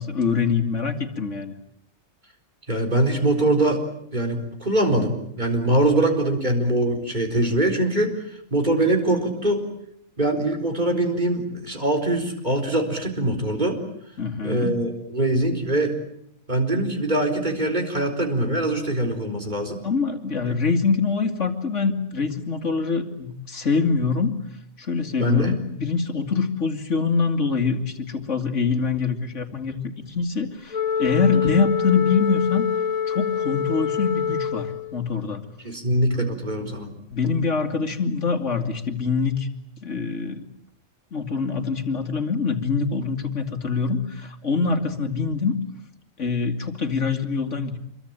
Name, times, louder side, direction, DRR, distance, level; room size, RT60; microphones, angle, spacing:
voice 1, 0.0-1.5 14.2-14.8 19.8-24.3 24.8-32.7 33.1-35.4 36.6-36.7 37.1-39.5 39.8-40.5 41.1-45.6 46.2-47.8, left 5 dB, 60° left, 6 dB, 2.7 m, -24 dB
voice 2, 2.7-3.8 4.1-8.1 8.5-9.7 10.2-13.8 14.4-15.9 16.5-19.8 20.5-20.6 25.2-25.5 35.6-36.9, right 1 dB, 35° right, 4 dB, 4.6 m, -23 dB
Wind instrument woodwind instrument, 30.7-35.1, left 7 dB, 90° left, 2.3 m, -26 dB
27.0 x 23.0 x 8.9 m, 0.72 s
omnidirectional pair, 1.4 m